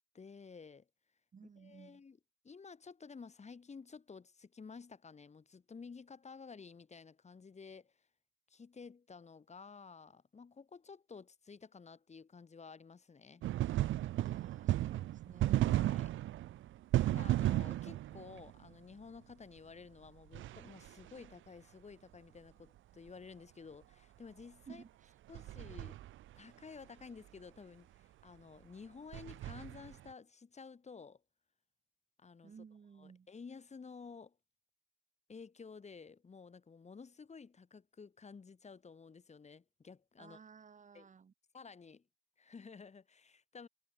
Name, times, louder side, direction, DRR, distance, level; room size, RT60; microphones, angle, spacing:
voice 1, 0.1-0.9 1.6-2.2 2.4-7.9 8.5-13.4 15.6-16.1 17.0-24.8 25.3-26.0 26.4-31.2 32.2-32.5 33.0-34.4 35.3-40.4 40.9-41.1 41.5-42.0 42.4-43.7, left 5 dB, 35° left, 4.1 m, -53 dB
voice 2, 1.3-2.0 14.1-15.8 24.7-25.1 32.4-33.3 40.2-41.3, right 6 dB, 40° right, 1.7 m, -56 dB
sound 1, 13.4-18.7 20.3-21.3 25.3-26.4 29.1-30.1, right 14 dB, 85° right, 0.5 m, -34 dB
cardioid pair, 120°, 20 cm